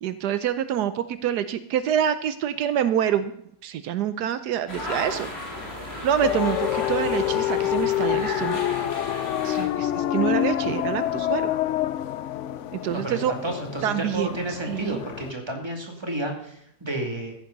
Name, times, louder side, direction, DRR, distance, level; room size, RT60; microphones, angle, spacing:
voice 1, 0.0-3.3 3.6-5.3 6.0-8.6 9.4-11.5 12.7-13.3 13.8-14.3 14.7-15.0, right 9 dB, 80° right, 12 dB, 1.3 m, -26 dB
sound 1, 4.7-9.7, left 1 dB, 40° left, 3.0 m, -35 dB
sound 2, 6.2-15.3, left 12 dB, 65° left, 0.8 m, -27 dB
voice 2, 12.9-17.3, right 1 dB, 15° right, 2 dB, 2.5 m, -31 dB
14.5 x 10.5 x 4.0 m, 0.73 s
omnidirectional pair, 1.7 m